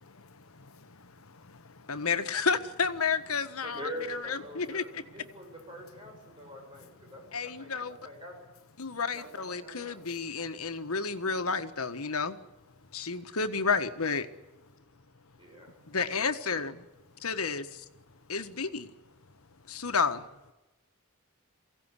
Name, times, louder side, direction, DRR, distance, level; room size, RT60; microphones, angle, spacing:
voice 1, 0.0-2.0, left 3 dB, 75° left, 1.1 m, -55 dB
voice 2, 1.9-5.0 7.3-8.0 8.8-12.4 12.9-14.3 15.9-16.8 17.2-17.8 18.3-18.9 19.7-20.3, left 5 dB, 90° left, 1.6 m, -31 dB
voice 3, 3.6-8.3 9.1-10.0 15.4-15.8, right 1 dB, 25° right, 6.7 m, -44 dB
23.0 x 16.5 x 9.9 m
head